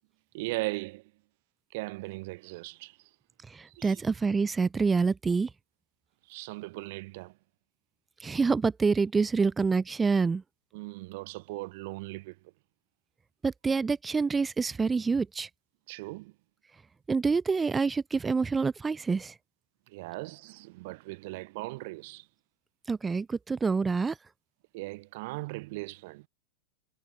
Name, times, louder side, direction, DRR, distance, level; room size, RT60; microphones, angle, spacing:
voice 1, 0.3-1.0 1.7-3.0 3.8-4.0 6.3-7.3 10.7-12.4 15.9-16.3 19.9-22.3 24.7-26.3, right 23 dB, 50° right, 7.2 m, -38 dB
voice 2, 3.5-5.5 8.2-10.4 13.4-15.5 17.1-19.3 22.9-24.2, right 4 dB, 15° right, 3.1 m, -27 dB
figure-of-eight pair, 90°, 0 cm